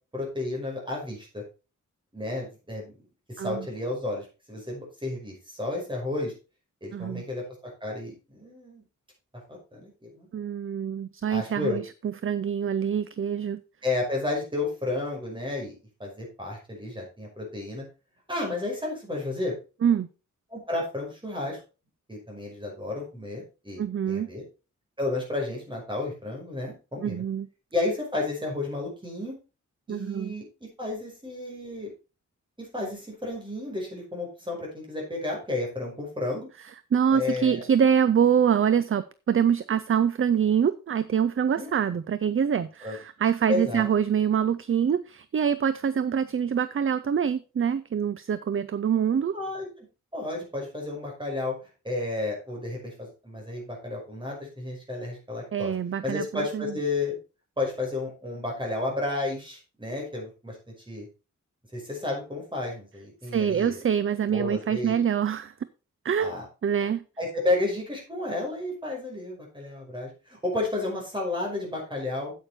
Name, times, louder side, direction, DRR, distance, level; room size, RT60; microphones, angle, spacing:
voice 1, 0.1-1.4 2.1-2.9 3.3-6.3 6.8-7.4 7.8-8.8 9.5-10.3 11.3-11.8 13.8-15.7 16.0-17.8 18.3-19.6 20.5-21.6 22.1-24.4 25.0-27.2 27.7-29.4 29.9-31.9 32.6-36.5 37.1-37.6 41.6-41.7 42.8-43.0 43.5-43.9 49.3-49.7 50.1-51.6 51.8-55.7 56.0-57.1 57.6-60.6 60.9-61.1 61.7-63.8 64.3-64.9 66.2-66.4 67.2-72.3, left 2 dB, 15° right, -1 dB, 5.6 m, -32 dB
voice 2, 6.9-7.2 10.3-11.8 12.2-13.6 19.8-20.1 23.8-24.3 27.0-27.5 29.9-30.3 36.9-49.4 55.5-56.7 63.3-65.5 66.0-66.4 66.6-67.0, right 8 dB, 45° right, 15 dB, 0.5 m, -25 dB
9.0 x 8.4 x 4.3 m, 0.31 s
wide cardioid pair, 140°, 31 cm